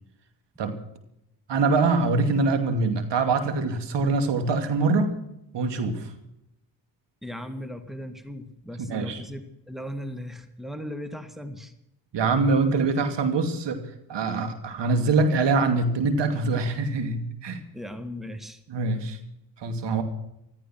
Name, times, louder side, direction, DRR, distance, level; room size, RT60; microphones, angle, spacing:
voice 1, 1.5-5.1 5.5-6.1 8.9-9.2 12.1-17.6 18.7-19.2 19.6-20.0, right 3 dB, 60° right, 8 dB, 2.7 m, -24 dB
voice 2, 7.2-11.7 17.7-18.6, equal, ahead, 9 dB, 1.9 m, -37 dB
15.0 x 13.5 x 6.0 m, 0.82 s
supercardioid pair, 60°, 47 cm